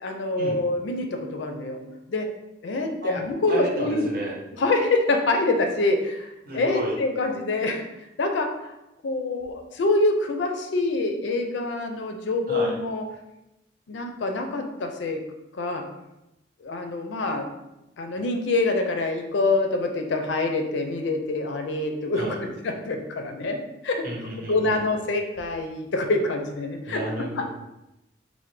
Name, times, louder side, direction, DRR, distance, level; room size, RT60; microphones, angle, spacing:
voice 1, 0.0-1.8 2.1-2.3 2.6-4.1 4.6-7.8 8.2-8.7 9.0-13.0 13.9-15.2 15.5-15.8 16.6-17.5 18.0-23.6 23.8-24.0 24.5-27.0, left 2 dB, 75° left, 4 dB, 0.4 m, -25 dB
voice 2, 3.5-4.3 6.5-7.0 12.5-12.7 22.2-22.4 24.0-24.8 26.8-27.5, equal, 50° right, -2 dB, 0.8 m, -31 dB
3.2 x 2.1 x 3.1 m, 0.91 s
head